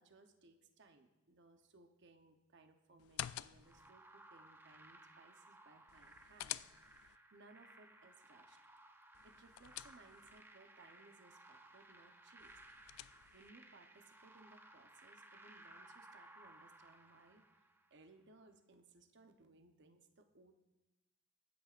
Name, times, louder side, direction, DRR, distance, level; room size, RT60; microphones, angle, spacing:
voice 1, 0.0-8.6 9.2-12.5 13.3-17.4 17.9-20.5, right 3 dB, 55° right, 6 dB, 0.8 m, -64 dB
sound 1, 3.0-3.9 5.9-7.2 9.1-10.4 12.4-13.5, left 13 dB, 70° left, 0.3 m, -49 dB
sound 2, 3.6-18.0, right 2 dB, 10° right, 0.5 m, -61 dB
22.5 x 9.3 x 2.5 m, 1.0 s
head